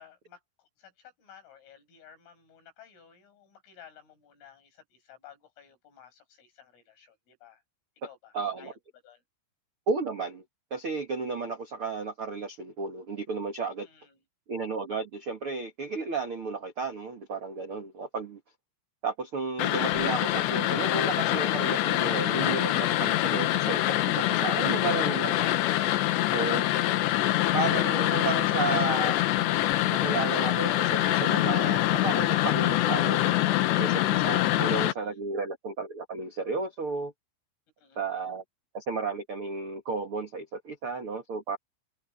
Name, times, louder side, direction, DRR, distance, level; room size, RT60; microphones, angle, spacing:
voice 1, 0.0-7.6 8.0-9.2 13.8-14.2 32.3-32.7 34.5-35.2 37.8-38.3, left 8 dB, 90° left, 8.7 m, -55 dB
voice 2, 8.3-8.7 9.9-10.4 10.7-13.9 14.5-18.4 19.0-25.6 26.3-26.7 27.5-29.2 29.9-33.3 33.8-37.1 37.9-38.4 38.7-41.6, right 4 dB, 80° right, 1.2 m, -33 dB
sound 1, 19.6-34.9, left 15 dB, 70° left, 3.1 m, -25 dB
omnidirectional pair, 5.6 m